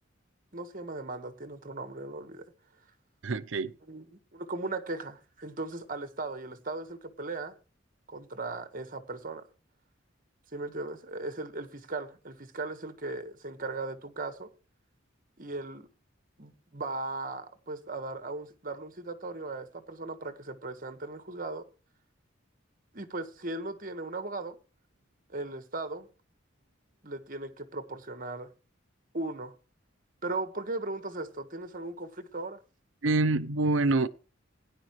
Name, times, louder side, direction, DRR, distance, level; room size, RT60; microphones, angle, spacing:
voice 1, 0.5-2.5 3.9-4.1 4.3-7.5 8.1-9.4 10.5-14.5 15.4-15.9 16.4-21.7 22.9-24.6 25.3-26.1 27.0-28.5 29.1-29.5 30.2-32.6, right 2 dB, 45° right, 1.4 m, -37 dB
voice 2, 3.2-3.7 33.0-34.1, right 2 dB, 85° right, 0.7 m, -26 dB
16.5 x 10.5 x 3.2 m
head